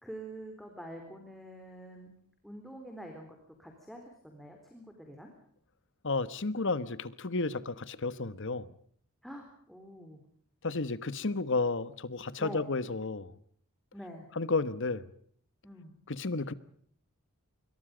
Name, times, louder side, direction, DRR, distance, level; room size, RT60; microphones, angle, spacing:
voice 1, 0.0-2.1 2.4-5.3 9.2-10.2 12.4-12.7 13.9-14.3 15.6-15.9, right 1 dB, ahead, 3.9 m, -46 dB
voice 2, 6.0-8.7 10.6-13.3 14.4-15.0 16.1-16.5, left 3 dB, 55° left, 1.3 m, -32 dB
26.5 x 23.5 x 5.1 m
head